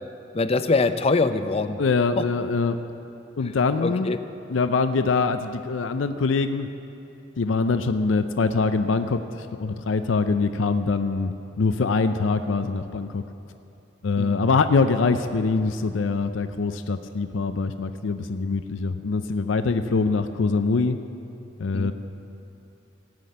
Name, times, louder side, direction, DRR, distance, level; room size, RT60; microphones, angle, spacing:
voice 1, 0.3-1.8 2.2-2.3 3.8-4.2 14.2-14.3 21.7-21.9, left 3 dB, 30° left, 11 dB, 0.5 m, -23 dB
voice 2, 1.8-2.8 3.4-4.1 4.5-6.7 7.4-13.2 14.0-21.0 21.6-21.9, left 4 dB, 90° left, 9 dB, 0.5 m, -24 dB
18.0 x 6.0 x 8.5 m, 2.8 s
head